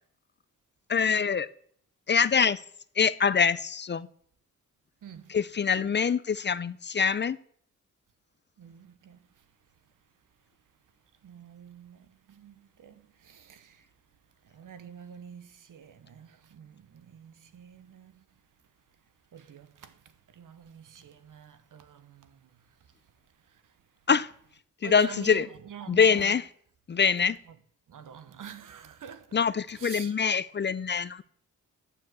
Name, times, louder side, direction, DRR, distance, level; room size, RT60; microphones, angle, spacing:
voice 1, 0.9-1.5 2.1-2.6 3.0-4.1 5.3-7.4 24.1-24.3 24.8-25.4 25.9-26.5 26.9-27.4 29.3-31.2, left 6 dB, 35° left, 0.4 m, -24 dB
voice 2, 5.0-5.3 8.6-9.2 11.2-12.0 12.3-13.8 14.5-18.2 19.3-19.9 20.4-22.4 24.8-26.4 27.9-29.4 29.7-30.1, right 8 dB, 80° right, 1.0 m, -46 dB
9.1 x 7.2 x 7.8 m
wide cardioid pair, 120°, 31 cm